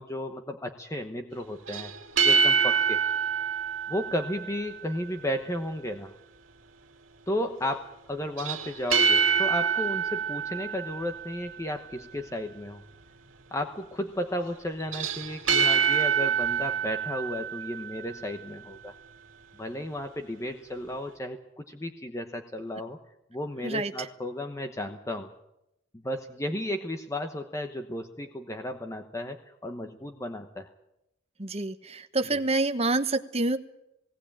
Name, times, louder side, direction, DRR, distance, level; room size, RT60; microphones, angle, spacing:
voice 1, 0.0-1.9 2.2-3.0 3.9-6.1 7.3-12.8 13.5-18.9 19.6-23.0 23.3-25.3 25.9-30.7, left 1 dB, 15° left, 5 dB, 1.0 m, -34 dB
sound 1, 1.7-5.0 8.4-11.7 14.8-18.4, right 6 dB, 85° right, 2.1 m, -26 dB
voice 2, 31.4-33.6, right 2 dB, 30° right, 8 dB, 1.1 m, -27 dB
18.0 x 18.0 x 8.7 m, 0.84 s
head